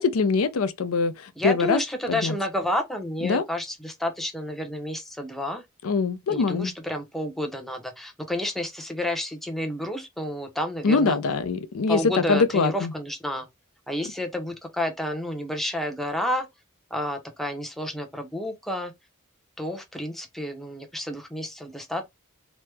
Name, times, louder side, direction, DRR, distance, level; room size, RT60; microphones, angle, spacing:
voice 1, 0.0-1.8 2.1-2.3 3.2-3.4 5.8-6.7 10.8-12.9, left 4 dB, 85° left, 0.5 m, -23 dB
voice 2, 1.4-5.6 6.3-11.2 11.9-13.5 13.9-16.5 16.9-18.9 19.6-22.0, left 1 dB, ahead, 0.5 m, -30 dB
3.0 x 2.0 x 3.3 m
head